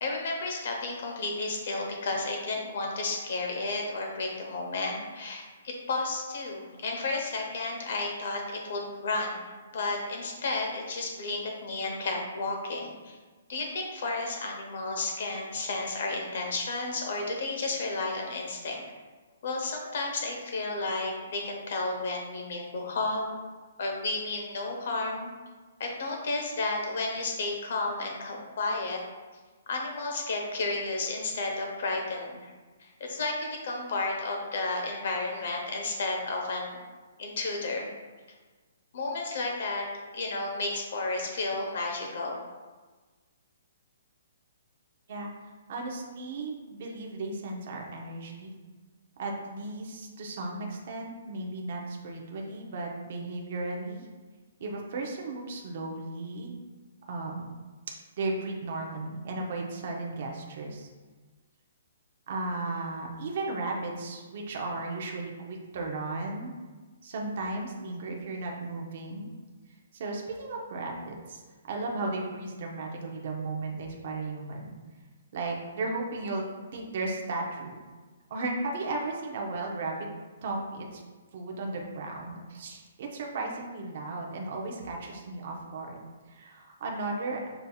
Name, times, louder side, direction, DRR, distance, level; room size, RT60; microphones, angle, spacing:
voice 1, 0.0-13.2 13.5-18.8 19.4-23.4 23.8-25.3 25.8-29.0 29.7-32.5 32.8-36.8 37.2-37.9 38.9-39.8 40.1-42.4, left 3 dB, 45° left, 1 dB, 0.8 m, -32 dB
voice 2, 45.7-48.5 49.2-54.1 54.6-56.6 57.1-57.5 57.9-60.9 62.3-66.5 67.0-69.3 69.9-71.4 71.7-74.7 75.3-77.8 78.3-80.1 80.4-81.0 81.3-86.0 86.3-87.5, right 2 dB, 40° right, 0 dB, 0.6 m, -35 dB
6.7 x 2.7 x 2.3 m, 1.3 s
hypercardioid pair, 175°, 0 cm